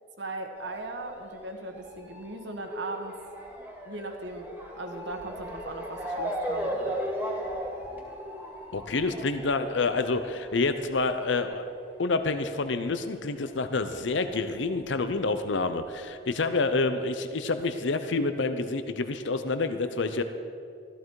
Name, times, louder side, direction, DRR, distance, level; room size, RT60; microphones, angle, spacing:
voice 1, 0.2-3.1 3.8-4.5 4.8-7.0, right 2 dB, 65° right, 4 dB, 1.5 m, -38 dB
Motor vehicle (road) / Siren, 0.6-13.6 13.8-15.0 15.7-15.8 16.0-16.1, equal, 10° right, 2.0 m, -37 dB
voice 2, 8.7-11.6 12.0-20.2, left 3 dB, 75° left, 9 dB, 0.7 m, -28 dB
14.5 x 14.0 x 4.7 m, 2.4 s
head